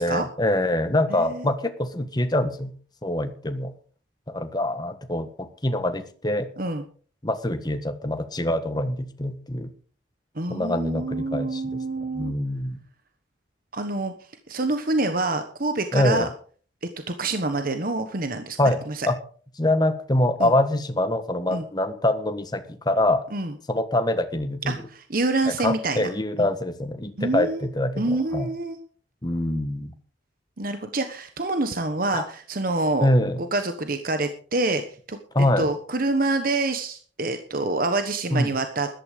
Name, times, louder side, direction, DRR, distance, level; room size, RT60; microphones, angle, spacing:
voice 1, 0.0-2.7 3.0-3.7 4.3-6.5 7.2-9.7 10.5-11.8 12.1-12.8 15.9-16.3 18.6-19.2 19.6-23.2 23.7-24.8 25.6-28.5 29.2-29.9 32.1-32.2 33.0-33.4 35.3-35.7 38.3-38.5, left 1 dB, 20° left, 8 dB, 1.5 m, -24 dB
voice 2, 1.1-1.5 6.6-6.8 10.4-12.3 13.7-14.1 14.5-16.3 17.1-19.1 20.4-20.5 21.5-21.6 23.3-23.5 24.7-26.1 26.4-26.5 27.2-27.6 28.0-28.8 30.6-33.1 33.5-34.8 35.1-38.9, right 2 dB, 50° right, 8 dB, 1.3 m, -26 dB
14.0 x 12.0 x 5.1 m, 0.43 s
head